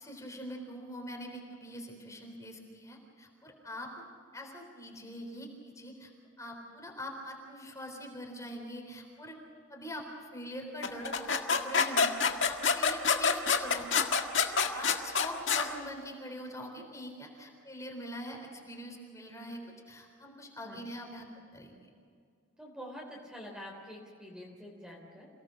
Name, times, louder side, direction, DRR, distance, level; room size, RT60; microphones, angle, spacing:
voice 1, 0.0-3.9 4.3-6.1 6.4-9.4 9.7-19.6 19.9-21.3 21.5-21.7, equal, 15° left, 1 dB, 3.9 m, -44 dB
sound 1, 10.8-15.7, left 5 dB, 60° left, 1.8 m, -27 dB
voice 2, 22.6-25.3, equal, 5° right, -1 dB, 3.5 m, -46 dB
28.0 x 18.0 x 6.5 m, 2.3 s
head